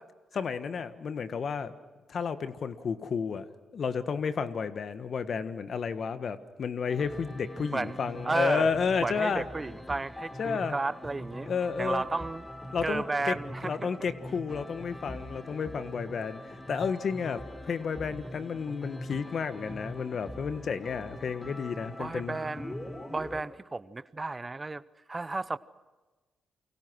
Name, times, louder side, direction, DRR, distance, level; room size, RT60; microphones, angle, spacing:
voice 1, 0.3-1.7 2.1-3.5 3.7-9.4 10.4-10.8 11.4-12.0 12.7-13.3 13.6-22.4, left 6 dB, 60° left, 11 dB, 1.5 m, -32 dB
sound 1, 6.9-23.4, equal, 25° left, 5.2 m, -43 dB
voice 2, 8.2-8.7 9.0-11.5 11.8-12.5 12.8-13.9 22.0-22.8 23.1-24.8 25.1-25.6, right 3 dB, 30° right, 17 dB, 0.8 m, -32 dB
29.0 x 24.5 x 6.3 m, 1.2 s
supercardioid pair, 50°, 0 cm